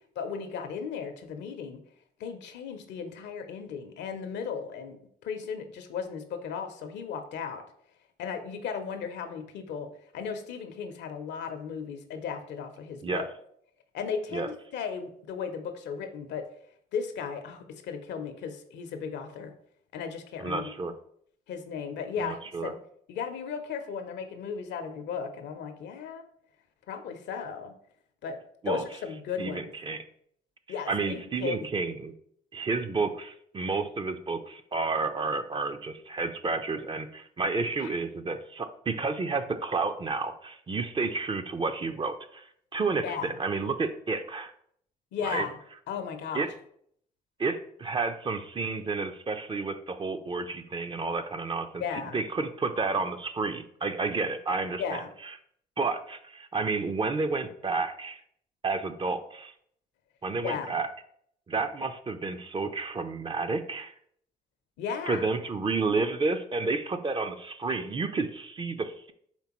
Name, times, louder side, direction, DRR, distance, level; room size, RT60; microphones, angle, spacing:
voice 1, 0.2-1.8 2.2-5.0 5.2-7.6 8.2-9.9 10.1-13.3 13.9-16.4 16.9-19.5 19.9-20.7 21.5-22.8 23.1-26.2 26.9-27.7 28.2-28.4 28.6-29.7 30.7-31.7 37.8-38.0 43.0-43.3 45.1-45.5 45.9-46.5 51.8-52.2 54.8-55.1 60.4-60.7 64.8-65.2, left 6 dB, 70° left, 7 dB, 0.6 m, -35 dB
voice 2, 20.4-20.9 22.2-22.7 28.6-28.8 29.4-30.0 30.9-32.1 32.5-44.5 45.2-45.5 46.3-46.5 47.4-51.8 52.1-55.0 55.8-58.2 58.6-59.5 60.2-60.9 61.5-63.9 65.1-69.1, right 3 dB, 25° right, 8 dB, 0.5 m, -31 dB
4.4 x 3.4 x 3.0 m, 0.66 s
hypercardioid pair, 55°, 19 cm